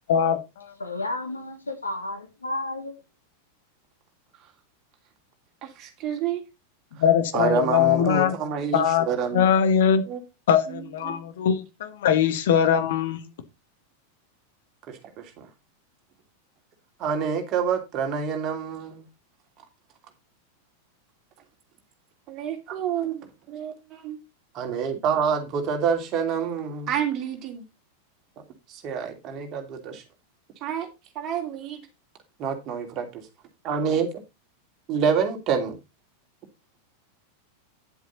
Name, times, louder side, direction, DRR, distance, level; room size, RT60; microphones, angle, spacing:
voice 1, 0.1-0.7 7.0-8.3 8.7-9.1 9.3-10.0 10.5-13.2, left 8 dB, 55° left, 1.6 m, -21 dB
voice 2, 0.8-2.9, left 2 dB, 80° left, 2.7 m, -32 dB
voice 3, 5.6-6.4 7.0-7.1 7.3-9.5 10.1-10.2 10.7-11.1 14.9-15.5 17.0-19.1 22.3-24.2 24.5-27.6 28.4-30.0 30.6-30.9 31.1-31.8 32.4-33.3 33.6-34.1 34.9-35.7, right 7 dB, 35° right, 2.9 m, -28 dB
10.0 x 8.0 x 4.0 m
figure-of-eight pair, 90°, 0 cm